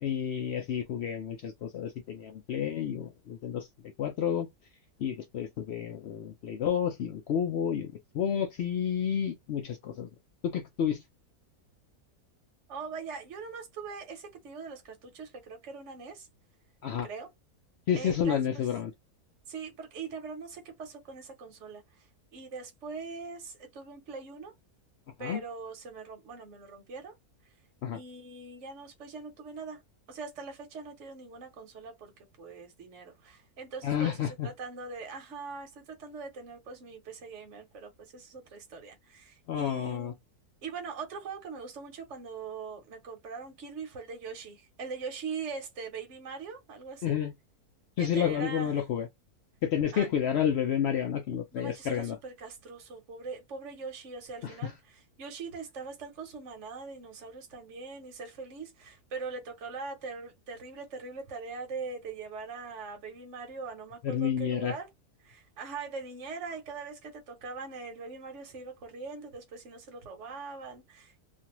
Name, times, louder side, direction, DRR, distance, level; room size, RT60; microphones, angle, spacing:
voice 1, 0.0-3.7 4.0-4.5 5.0-10.1 10.4-11.0 16.8-17.1 17.9-18.9 25.2-25.4 27.8-28.0 33.8-34.5 39.5-40.1 47.0-47.3 48.0-49.1 49.6-52.2 54.4-54.7 64.0-64.8, left 8 dB, 75° left, 0.6 m, -30 dB
voice 2, 12.7-16.3 17.0-17.3 17.9-18.7 19.5-24.5 25.2-27.1 27.9-29.8 30.1-40.2 40.6-47.2 48.0-48.7 49.9-50.1 51.5-64.9 65.2-71.2, right 4 dB, 55° right, 1.1 m, -42 dB
2.6 x 2.4 x 2.9 m
omnidirectional pair, 1.6 m